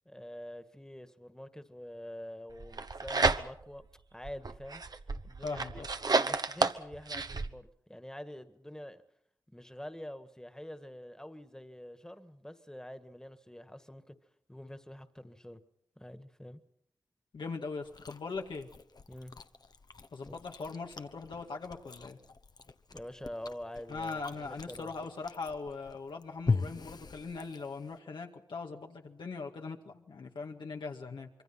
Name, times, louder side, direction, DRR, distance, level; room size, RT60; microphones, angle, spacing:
voice 1, 0.1-3.9 4.1-4.8 5.2-9.0 9.5-14.2 14.5-15.6 16.0-16.6 19.1-19.3 20.2-20.4 22.9-24.9, left 1 dB, 10° left, 1.8 m, -46 dB
sound 1, 2.6-3.8 4.2-7.5, right 3 dB, 55° right, 1.1 m, -31 dB
voice 2, 5.4-5.9 17.3-18.7 20.1-22.2 23.9-31.3, left 4 dB, 90° left, 2.1 m, -40 dB
Chewing mastication, 17.8-28.0, left 4 dB, 60° left, 1.1 m, -40 dB
25.5 x 23.0 x 5.9 m
cardioid pair, 45°, 8 cm